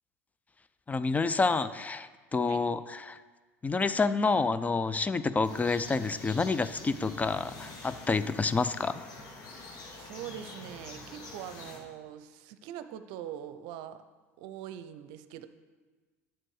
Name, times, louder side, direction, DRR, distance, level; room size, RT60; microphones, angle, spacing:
voice 1, 0.9-3.2 3.6-9.0, left 4 dB, 20° left, 13 dB, 0.4 m, -28 dB
sound 1, 5.4-11.8, left 3 dB, 50° left, 2.0 m, -46 dB
voice 2, 9.9-14.0 14.4-15.5, right 10 dB, 65° right, 11 dB, 0.6 m, -43 dB
10.0 x 7.4 x 4.8 m, 1.4 s
hypercardioid pair, 80°, 8 cm